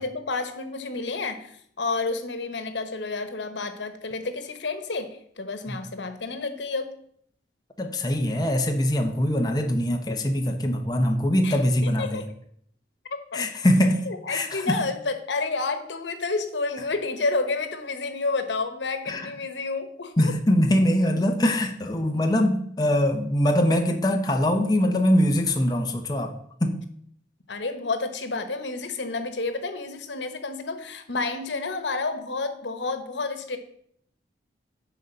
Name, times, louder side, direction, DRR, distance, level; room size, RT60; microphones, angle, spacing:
voice 1, 0.0-6.9 11.4-12.2 13.1-13.4 14.1-20.3 27.5-33.6, left 3 dB, 90° left, 9 dB, 1.1 m, -30 dB
voice 2, 7.8-12.3 13.3-14.8 19.1-19.3 20.2-26.3 26.6-26.8, left 1 dB, 20° left, 3 dB, 0.8 m, -23 dB
10.0 x 4.1 x 6.5 m, 0.66 s
head